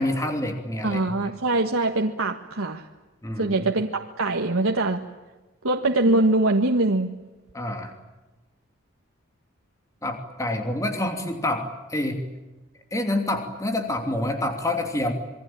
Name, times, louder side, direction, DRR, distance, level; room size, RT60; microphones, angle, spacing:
voice 1, 0.0-1.3 3.2-3.6 7.5-7.9 10.0-12.2 12.9-15.1, left 1 dB, 15° left, 5 dB, 2.8 m, -27 dB
voice 2, 0.8-2.9 3.4-5.0 5.6-7.1, right 2 dB, 90° right, 2 dB, 1.6 m, -23 dB
27.5 x 23.0 x 8.9 m, 1.1 s
head